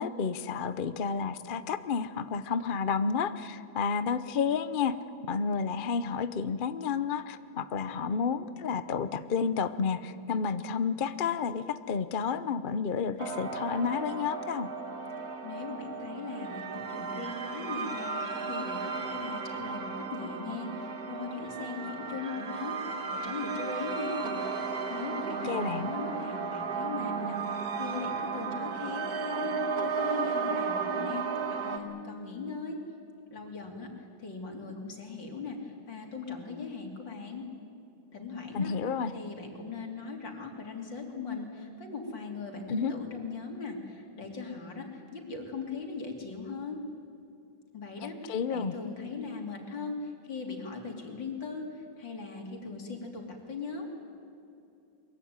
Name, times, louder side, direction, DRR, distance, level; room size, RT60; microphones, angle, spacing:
voice 1, 0.0-4.9 5.3-14.7 25.4-26.0 38.5-39.1 42.7-42.9 48.0-48.7, left 6 dB, 45° left, 12 dB, 0.7 m, -31 dB
sound 1, 13.2-31.8, right 5 dB, 55° right, 2.0 m, -34 dB
voice 2, 15.4-24.4 24.9-31.2 31.6-32.8 33.3-37.5 38.1-38.7 39.1-46.8 47.7-53.9, left 4 dB, 85° left, 2 dB, 3.9 m, -39 dB
23.0 x 22.5 x 9.6 m, 2.6 s
omnidirectional pair, 2.0 m